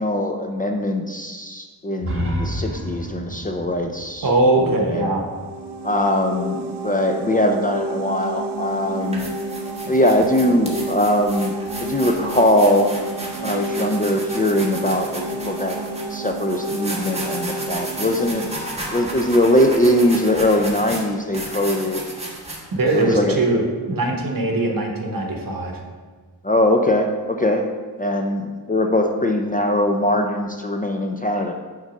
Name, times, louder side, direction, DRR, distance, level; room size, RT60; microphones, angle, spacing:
voice 1, 0.0-4.3 4.6-5.1 5.8-9.2 9.9-12.9 13.4-15.8 16.1-18.5 18.9-22.0 22.9-23.4 26.4-27.7 28.0-31.5, left 1 dB, 20° left, 3 dB, 0.5 m, -21 dB
sound 1, 2.0-5.8, equal, 30° right, 0.9 m, -30 dB
voice 2, 4.2-5.2 22.7-25.8, right 2 dB, 55° right, 2 dB, 1.2 m, -21 dB
sound 2, 5.1-19.8, right 2 dB, 75° right, 0.6 m, -31 dB
sound 3, 8.2-8.4 8.9-23.0, right 1 dB, 15° right, 1.4 m, -34 dB
6.2 x 4.0 x 5.2 m, 1.4 s
wide cardioid pair, 80°, 41 cm